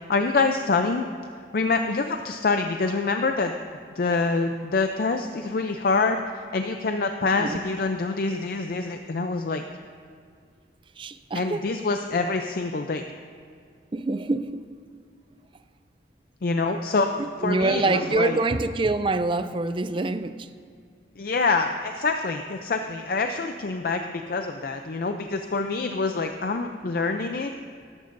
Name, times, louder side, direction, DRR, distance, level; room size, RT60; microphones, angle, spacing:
voice 1, 0.1-1.1 1.5-3.5 4.0-6.2 6.5-9.6 11.3-13.0 16.4-17.1 17.4-18.4 21.2-27.5, left 3 dB, 55° left, 6 dB, 0.5 m, -25 dB
voice 2, 11.0-11.6 13.9-14.6 17.2-20.5, right 3 dB, 30° right, 11 dB, 0.4 m, -25 dB
19.5 x 11.5 x 2.6 m, 2.2 s
head